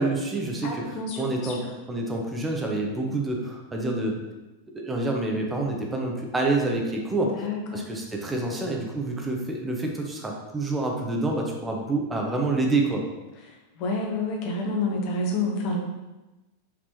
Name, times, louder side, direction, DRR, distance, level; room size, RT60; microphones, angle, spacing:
voice 1, 0.0-1.6 1.9-4.2 4.7-7.3 7.7-13.0, right 2 dB, 10° right, 0 dB, 0.7 m, -27 dB
voice 2, 0.6-1.5 7.1-7.8 13.8-15.8, left 2 dB, 45° left, 0 dB, 0.9 m, -29 dB
4.9 x 3.4 x 3.0 m, 1.1 s
figure-of-eight pair, 90°, 0 cm